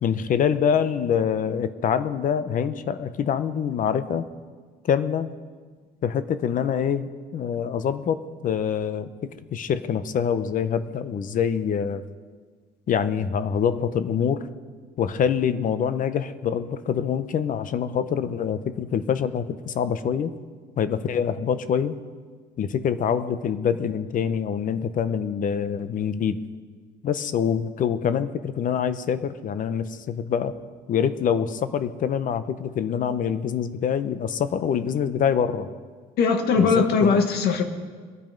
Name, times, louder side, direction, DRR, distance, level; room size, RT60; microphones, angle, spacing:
voice 1, 0.0-4.2 4.8-5.3 6.0-12.0 12.9-14.5 15.0-20.3 20.8-22.0 22.6-26.4 27.0-30.6 30.9-35.7 36.6-37.2, left 7 dB, 50° left, 12 dB, 0.9 m, -25 dB
voice 2, 36.2-37.6, left 5 dB, 75° left, 5 dB, 1.9 m, -20 dB
23.0 x 9.1 x 5.3 m, 1.5 s
cardioid pair, 110°, 17 cm